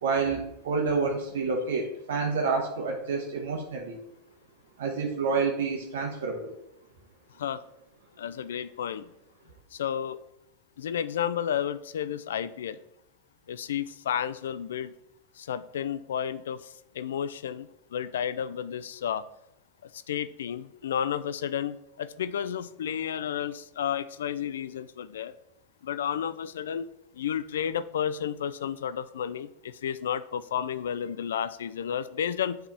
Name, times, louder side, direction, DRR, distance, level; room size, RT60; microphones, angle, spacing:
voice 1, 0.0-4.0 4.8-6.6, right 4 dB, 85° right, 1 dB, 1.1 m, -28 dB
voice 2, 8.2-9.1 9.7-10.2 10.8-12.8 13.5-14.9 15.4-19.2 19.8-25.3 25.8-26.9 27.1-32.6, left 9 dB, 90° left, 14 dB, 0.4 m, -32 dB
7.6 x 3.4 x 4.1 m, 0.79 s
hypercardioid pair, 120°, 0 cm